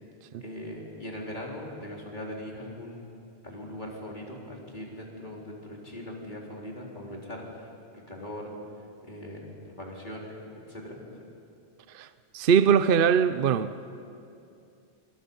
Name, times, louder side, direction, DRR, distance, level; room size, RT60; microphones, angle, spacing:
voice 1, 0.4-7.7 8.1-8.5 9.0-10.4 10.7-11.0, left 1 dB, 45° left, 4.3 m, -40 dB
voice 2, 12.3-13.7, right 7 dB, 55° right, 0.8 m, -21 dB
27.0 x 26.0 x 5.5 m
omnidirectional pair, 1.1 m